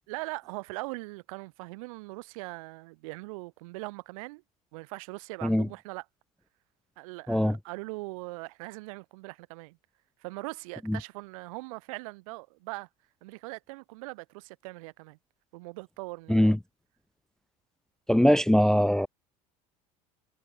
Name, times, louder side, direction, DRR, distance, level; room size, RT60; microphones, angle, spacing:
voice 1, 0.1-4.4 4.7-6.0 7.0-9.8 10.2-12.9 13.2-15.2 15.5-16.5, right 25 dB, 80° right, 6.2 m, -41 dB
voice 2, 18.1-19.1, equal, 5° left, 0.4 m, -22 dB
supercardioid pair, 85°, 17 cm